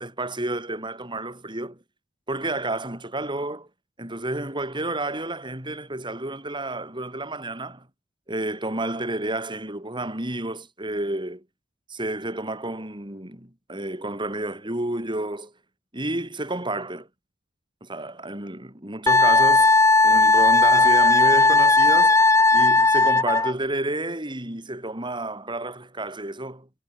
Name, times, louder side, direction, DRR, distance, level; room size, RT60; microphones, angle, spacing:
voice 1, 0.0-1.8 2.3-3.7 4.0-7.9 8.3-11.4 11.9-15.5 15.9-17.1 17.8-19.7 20.0-22.2 22.5-26.7, right 2 dB, 25° right, 6.5 m, -30 dB
Wind instrument woodwind instrument, 19.1-23.5, left 3 dB, 15° left, 1.5 m, -16 dB
head